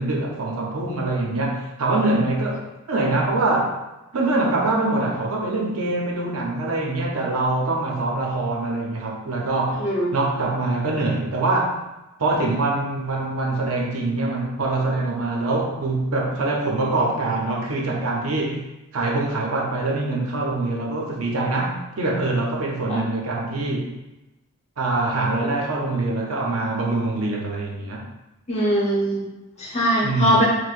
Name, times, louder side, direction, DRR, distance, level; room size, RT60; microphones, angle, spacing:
voice 1, 0.0-3.7 4.1-9.8 10.1-11.8 12.2-18.6 18.9-23.9 24.8-28.1 30.0-30.4, right 2 dB, 85° right, -1 dB, 0.7 m, -24 dB
voice 2, 9.8-10.1 22.9-23.0 28.5-29.2 29.6-30.4, equal, 30° left, -6 dB, 1.0 m, -21 dB
4.5 x 2.2 x 2.4 m, 1.0 s
head